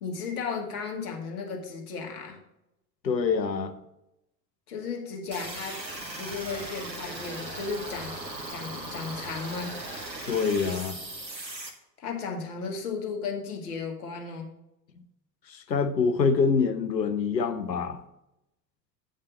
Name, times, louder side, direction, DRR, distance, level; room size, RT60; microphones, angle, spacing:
voice 1, 0.0-2.4 4.7-5.8 6.2-8.2 8.5-9.8 12.0-14.5, left 5 dB, 60° left, 1 dB, 2.1 m, -35 dB
voice 2, 3.0-3.7 10.3-11.0 15.5-18.0, left 5 dB, 80° left, 9 dB, 0.9 m, -25 dB
sound 1, 5.3-11.7, right 2 dB, 90° right, 1.2 m, -38 dB
8.7 x 5.5 x 5.2 m, 0.88 s
figure-of-eight pair, 75°, 50 cm